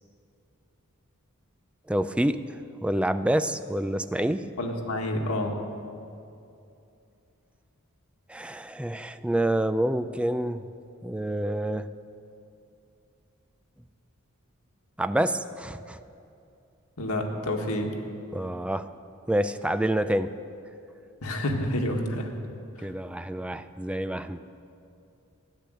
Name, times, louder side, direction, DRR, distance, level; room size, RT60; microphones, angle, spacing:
voice 1, 1.9-2.4 2.8-4.5 8.3-10.7 11.0-11.9 15.0-16.0 18.3-18.9 19.3-20.3 22.8-24.5, right 1 dB, 5° right, 11 dB, 0.3 m, -27 dB
voice 2, 4.6-5.5 17.0-17.9 21.2-22.3 22.8-22.9, left 1 dB, 90° left, 2 dB, 1.7 m, -28 dB
13.5 x 10.0 x 7.8 m, 2.6 s
head